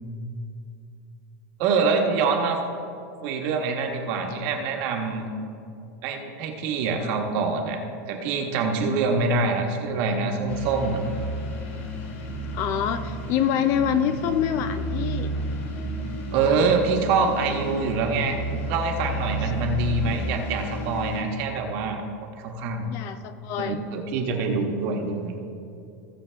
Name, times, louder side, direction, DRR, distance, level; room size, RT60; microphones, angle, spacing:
voice 1, 1.6-2.6 3.2-5.3 6.0-7.8 8.1-11.0 16.3-18.4 18.6-22.0 22.4-22.9 23.6-25.3, right 4 dB, 40° right, 3 dB, 1.3 m, -25 dB
sound 1, 10.5-21.2, right 1 dB, 55° left, 2.2 m, -31 dB
voice 2, 12.5-15.3 22.9-23.8, left 9 dB, 35° left, 11 dB, 0.4 m, -25 dB
18.5 x 7.3 x 3.4 m, 2.6 s
supercardioid pair, 175°, 9 cm